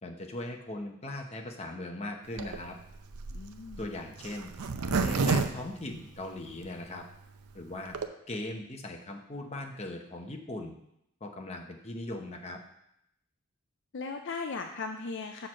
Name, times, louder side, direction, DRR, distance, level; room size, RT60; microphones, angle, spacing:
voice 1, 0.0-2.8 3.8-4.5 5.0-7.0 7.5-8.0 8.3-10.8 11.2-12.6, left 1 dB, 30° left, 2 dB, 0.8 m, -39 dB
Zipper (clothing), 2.3-6.6 7.1-7.2 7.4-7.5 7.7-8.1, right 4 dB, 90° right, 0.6 m, -30 dB
voice 2, 3.3-3.9 13.9-15.5, left 4 dB, 55° left, 5 dB, 0.5 m, -37 dB
6.5 x 4.5 x 6.3 m, 0.77 s
head